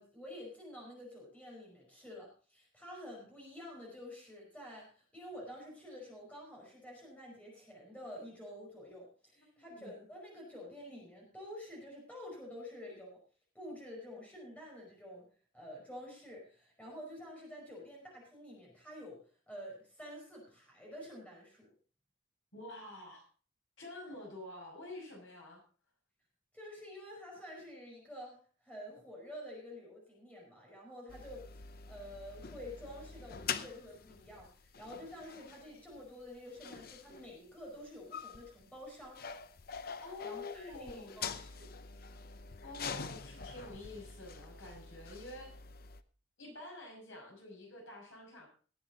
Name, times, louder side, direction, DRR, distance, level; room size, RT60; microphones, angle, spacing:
voice 1, 0.0-13.2 13.5-15.3 15.5-19.2 19.5-21.7 26.5-39.2 40.2-41.7, left 1 dB, 5° left, -2 dB, 5.2 m, -49 dB
voice 2, 9.5-10.0 22.5-23.3 23.8-25.6 35.6-35.8 40.0-41.2 42.6-45.5 46.4-48.5, left 2 dB, 75° left, 0 dB, 6.0 m, -48 dB
sound 1, 31.1-46.0, left 6 dB, 45° left, 0.6 m, -45 dB
19.0 x 8.0 x 3.9 m, 0.39 s
head